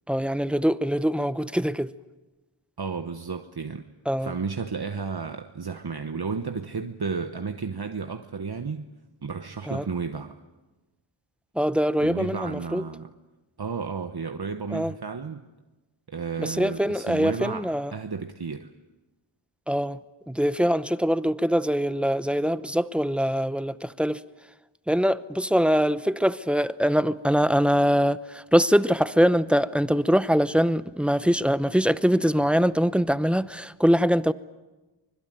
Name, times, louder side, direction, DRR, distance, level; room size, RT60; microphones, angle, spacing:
voice 1, 0.1-1.9 4.1-4.3 9.7-9.9 11.6-12.8 14.7-14.9 16.4-17.9 19.7-20.0 20.3-24.2 24.9-34.3, equal, ahead, 0.8 m, -23 dB
voice 2, 2.8-3.9 4.2-8.8 9.2-10.4 12.0-13.1 13.6-15.4 16.1-18.7, right 5 dB, 50° right, 1.2 m, -32 dB
25.0 x 22.0 x 9.2 m
wide cardioid pair, 65°, 48 cm